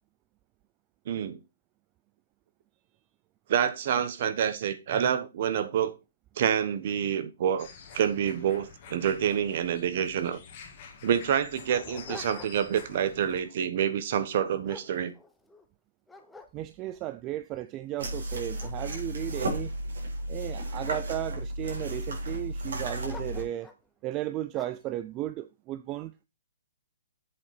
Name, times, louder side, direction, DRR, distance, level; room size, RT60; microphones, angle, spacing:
voice 1, 1.1-1.4 3.5-5.9 6.4-7.7 7.9-10.4 11.0-15.1, right 9 dB, 50° right, 1.1 m, -27 dB
sound 1, 7.6-13.4, left 6 dB, 40° left, 1.9 m, -48 dB
Dog, 10.5-10.6 11.2-12.8 13.2-13.6 14.1-15.6 16.1-17.0 17.6-17.7 18.1-20.5 21.1-21.8 23.0-23.9 24.5-24.9, left 3 dB, 5° left, 0.8 m, -49 dB
voice 2, 16.5-19.7 20.3-23.7 24.0-26.1, right 14 dB, 25° right, 0.4 m, -35 dB
sound 2, 18.0-23.4, right 1 dB, 75° right, 3.7 m, -34 dB
7.9 x 3.9 x 5.8 m
hypercardioid pair, 150°, 0 cm